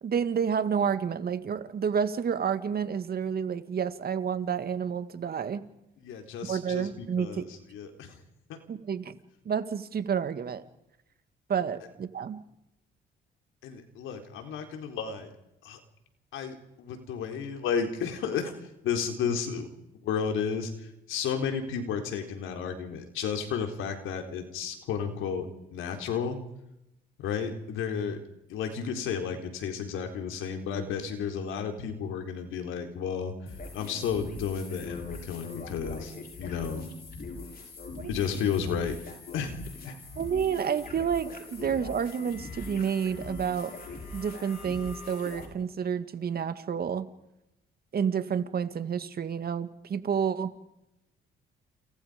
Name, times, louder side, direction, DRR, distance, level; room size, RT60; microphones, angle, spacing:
voice 1, 0.0-5.6 6.5-7.4 8.7-9.2 9.5-10.6 11.5-12.4 38.0-38.1 40.2-43.7 44.1-47.1 47.9-50.5, right 7 dB, 50° right, 11 dB, 2.0 m, -29 dB
voice 2, 6.0-8.2 13.6-15.3 15.6-15.8 16.3-18.5 18.8-19.7 20.0-25.5 25.7-26.4 27.2-28.2 28.5-33.3 33.7-36.1 36.4-36.9 38.1-39.0 39.3-40.0, left 7 dB, 90° left, 5 dB, 4.3 m, -32 dB
sound 1, 33.5-45.4, left 3 dB, 50° left, 8.0 m, -42 dB
29.5 x 27.5 x 5.3 m, 0.88 s
cardioid pair, 90°, 20 cm